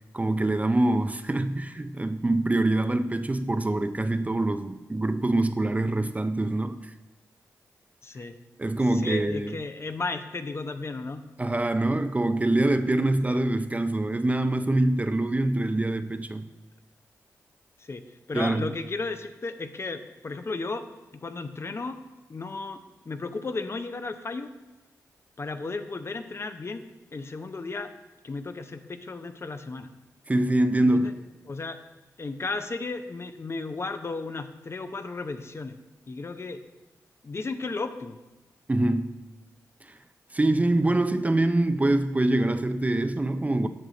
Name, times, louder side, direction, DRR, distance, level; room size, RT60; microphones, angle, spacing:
voice 1, 0.1-6.9 8.6-9.6 11.4-16.5 18.3-18.7 30.3-31.3 38.7-39.2 39.8-40.0 40.3-43.7, right 2 dB, 20° right, 10 dB, 0.4 m, -25 dB
voice 2, 8.0-8.3 9.0-11.2 13.2-13.4 17.9-18.0 18.3-20.8 21.2-21.9 22.3-22.8 23.1-24.5 25.4-26.8 27.1-27.9 28.2-29.9 30.9-31.1 31.5-31.8 32.2-35.7 36.1-36.6 37.2-38.2, left 3 dB, 40° left, 9 dB, 0.6 m, -34 dB
7.7 x 6.3 x 3.9 m, 1.0 s
cardioid pair, 50°, 7 cm